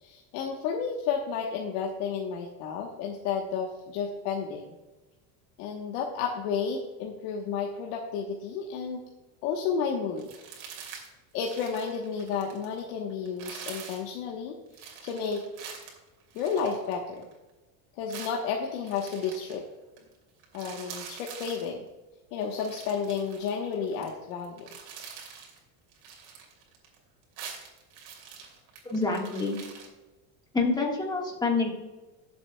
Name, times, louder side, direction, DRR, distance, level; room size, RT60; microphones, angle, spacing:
voice 1, 0.0-4.7 5.6-9.0 9.4-10.3 11.3-14.6 15.0-15.8 16.3-17.2 18.0-19.6 20.5-21.8 22.3-24.7, left 6 dB, 80° left, 0 dB, 1.3 m, -32 dB
sound 1, 10.2-11.1 11.4-12.8 13.3-14.1 14.7-17.4 18.1-19.6 20.0-20.1 20.4-21.7 22.4-24.1 24.4-25.6 25.9-27.0 27.2-29.9, right 6 dB, 80° right, 3.1 m, -45 dB
voice 2, 28.8-29.6 30.5-31.7, left 3 dB, 10° left, -1 dB, 1.6 m, -27 dB
19.5 x 7.8 x 2.3 m, 1.1 s
cardioid pair, 170°, 45 cm